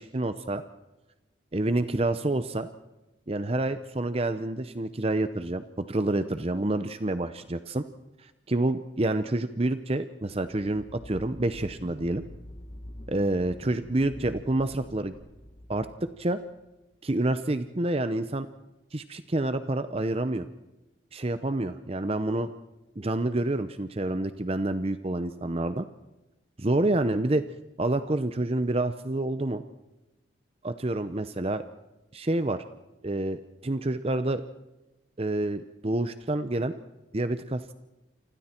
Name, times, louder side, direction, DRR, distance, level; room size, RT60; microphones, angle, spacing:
voice 1, 0.1-0.6 1.5-2.7 3.3-7.8 8.2-12.2 13.1-15.1 15.7-16.4 17.0-18.5 18.9-20.5 21.1-22.5 23.0-25.8 26.6-27.4 27.8-29.6 30.6-31.6 32.1-32.6 33.0-34.4 35.2-36.7 37.1-37.7, right 2 dB, 30° right, 11 dB, 0.7 m, -28 dB
sound 1, 10.4-16.7, left 1 dB, 35° left, 1.5 m, -46 dB
29.0 x 25.5 x 4.5 m, 1.0 s
head